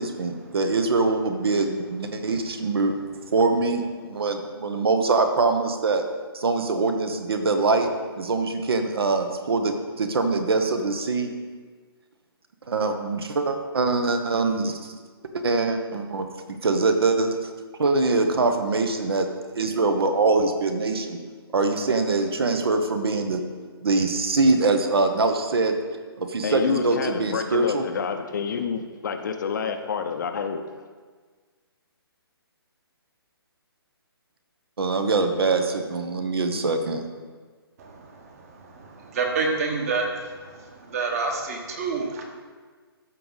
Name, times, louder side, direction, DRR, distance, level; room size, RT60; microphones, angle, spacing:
voice 1, 0.0-2.9 3.3-6.0 6.3-7.9 8.2-11.3 12.7-14.9 15.3-17.5 17.8-19.3 19.5-21.2 21.5-23.4 23.8-25.8 26.2-27.8 34.8-37.0, right 3 dB, 70° right, 6 dB, 1.1 m, -23 dB
voice 2, 26.4-30.7, left 6 dB, 45° left, 7 dB, 0.7 m, -28 dB
voice 3, 37.8-42.2, right 4 dB, 35° right, 2 dB, 1.4 m, -29 dB
13.5 x 4.8 x 4.0 m, 1.5 s
hypercardioid pair, 155°, 13 cm